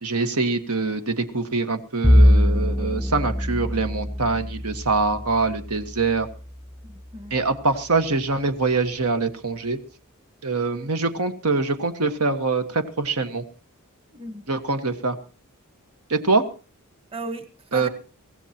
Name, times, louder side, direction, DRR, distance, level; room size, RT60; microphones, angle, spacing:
voice 1, 0.0-6.3 7.3-9.8 10.4-13.4 14.5-15.2 16.1-16.4 17.7-17.9, right 3 dB, 85° right, 8 dB, 1.5 m, -24 dB
Bowed string instrument, 2.0-6.6, equal, 5° left, 0.7 m, -22 dB
voice 2, 6.8-7.4 14.1-14.5 17.1-17.9, right 2 dB, 25° right, 9 dB, 1.3 m, -36 dB
23.0 x 16.5 x 2.9 m, 0.36 s
head